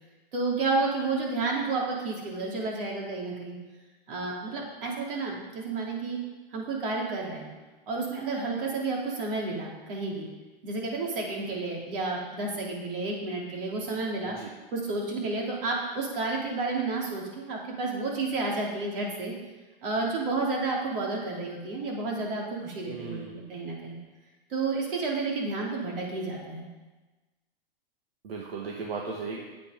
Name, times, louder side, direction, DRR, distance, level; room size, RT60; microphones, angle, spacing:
voice 1, 0.3-3.6 4.1-6.2 6.5-7.5 7.9-10.3 10.6-14.4 14.7-19.3 19.8-24.0 24.5-26.7, right 3 dB, 65° right, -2 dB, 3.3 m, -31 dB
voice 2, 22.8-23.4 28.2-29.4, right 4 dB, 85° right, -2 dB, 1.6 m, -36 dB
8.9 x 8.3 x 5.1 m, 1.2 s
hypercardioid pair, 145°, 29 cm